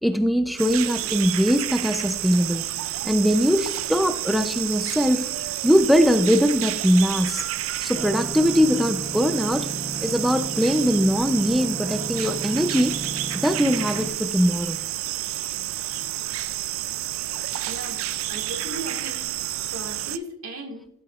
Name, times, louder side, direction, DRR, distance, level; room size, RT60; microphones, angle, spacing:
voice 1, 0.0-2.6 3.0-5.3 5.6-7.4 7.8-9.7 10.0-13.0 13.3-14.8, equal, ahead, 8 dB, 0.4 m, -21 dB
sound 1, 0.6-20.2, right 14 dB, 65° right, 0.4 m, -30 dB
sound 2, 7.9-14.1, right 1 dB, 15° right, 1.5 m, -35 dB
voice 2, 17.7-18.0 18.3-19.3 19.7-20.9, right 1 dB, 85° right, 2 dB, 2.0 m, -36 dB
12.0 x 8.0 x 2.4 m, 0.73 s
head